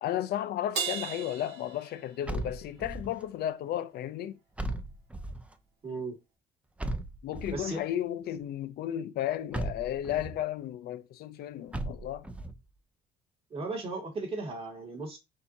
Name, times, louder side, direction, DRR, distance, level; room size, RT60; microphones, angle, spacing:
voice 1, 0.0-4.4 7.2-12.3, left 11 dB, 70° left, 0.6 m, -34 dB
Crash cymbal, 0.7-2.5, right 6 dB, 75° right, 2.4 m, -36 dB
sound 1, 2.3-3.2 4.6-5.5 6.8-7.8 9.5-10.4 11.7-12.6, right 1 dB, 5° right, 0.5 m, -36 dB
voice 2, 5.8-6.2 7.5-7.8 13.5-15.2, right 3 dB, 35° right, 2.3 m, -36 dB
6.5 x 2.8 x 2.8 m
cardioid pair, 110°, 17 cm